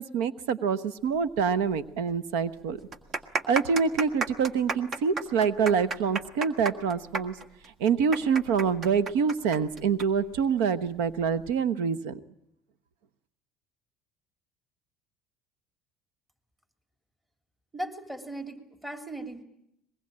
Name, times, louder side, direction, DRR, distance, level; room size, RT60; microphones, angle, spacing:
voice 1, 0.0-2.8 3.5-7.4 7.8-12.2, right 6 dB, 80° right, 15 dB, 1.1 m, -26 dB
sound 1, 1.7-1.8 2.1-2.2 2.8-10.1 10.3-10.4 11.2-11.5, right 3 dB, 45° right, 1.8 m, -32 dB
voice 2, 17.7-19.4, right 1 dB, 10° right, 6 dB, 3.1 m, -37 dB
23.0 x 21.5 x 8.8 m, 0.79 s
supercardioid pair, 85°, 0 cm